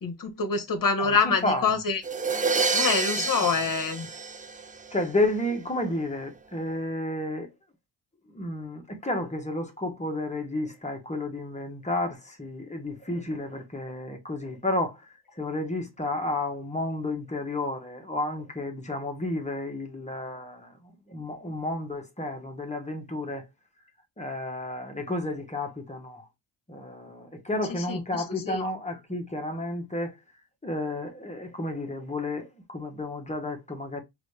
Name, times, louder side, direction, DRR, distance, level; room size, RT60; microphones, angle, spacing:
voice 1, 0.0-2.0 2.7-4.1 27.9-28.0 28.5-28.7, left 5 dB, 45° left, 1.1 m, -26 dB
voice 2, 1.0-1.7 3.3-3.5 4.9-7.5 8.3-15.0 15.4-23.4 24.2-26.3 26.7-30.1 30.6-34.0, left 1 dB, 15° left, 1.1 m, -31 dB
sound 1, 2.0-5.0, right 4 dB, 20° right, 0.4 m, -28 dB
5.2 x 2.7 x 3.2 m
wide cardioid pair, 110°, 45 cm